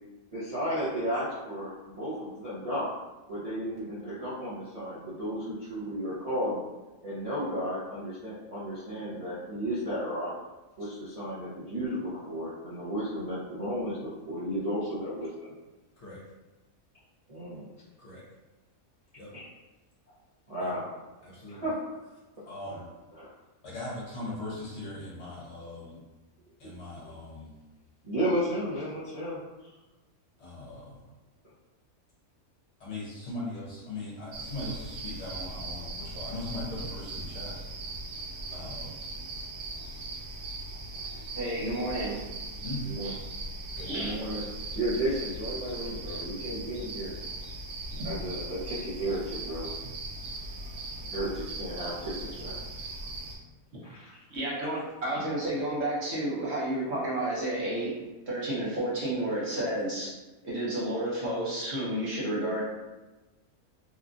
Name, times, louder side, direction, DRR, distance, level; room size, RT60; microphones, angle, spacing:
voice 1, 0.3-2.9 3.3-6.6 7.0-10.3 10.8-15.5 17.3-17.7 19.3-19.5 20.5-20.9 21.5-21.8 22.7-22.8 23.2-23.3 28.0-29.7 42.8-43.1 43.9-44.4 44.7-47.1 48.0-49.7 51.1-52.6 53.8-54.2, equal, 35° right, -13 dB, 0.6 m, -33 dB
voice 2, 21.2-21.6 22.5-22.9 23.6-26.0 26.6-27.5 30.4-31.0 32.8-37.6 38.5-39.0 42.6-42.9 43.7-43.9, left 2 dB, 55° left, -6 dB, 1.0 m, -39 dB
sound 1, 34.3-53.4, right 2 dB, 90° right, 1.1 m, -39 dB
voice 3, 41.4-42.2 43.0-43.1 43.8-44.1 54.3-57.9 58.3-60.1 60.4-62.6, right 1 dB, 55° right, -7 dB, 1.0 m, -31 dB
3.0 x 2.3 x 2.5 m, 1.1 s
omnidirectional pair, 1.5 m